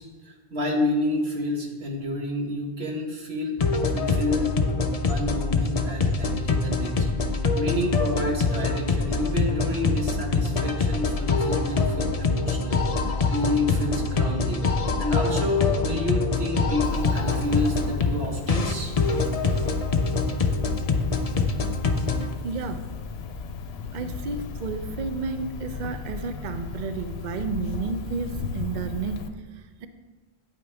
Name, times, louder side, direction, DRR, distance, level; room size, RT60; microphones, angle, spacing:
voice 1, 0.0-3.6 3.9-4.6 5.0-7.1 7.5-14.7 15.0-18.9, left 1 dB, 75° right, 1 dB, 1.6 m, -29 dB
sound 1, 3.6-22.3, left 4 dB, 40° left, 0.6 m, -24 dB
Cricket, 16.8-29.3, left 5 dB, 80° left, 0.9 m, -36 dB
voice 2, 22.4-22.9 23.9-29.9, right 4 dB, 55° right, 8 dB, 0.6 m, -32 dB
9.3 x 8.7 x 3.4 m, 1.3 s
omnidirectional pair, 1.1 m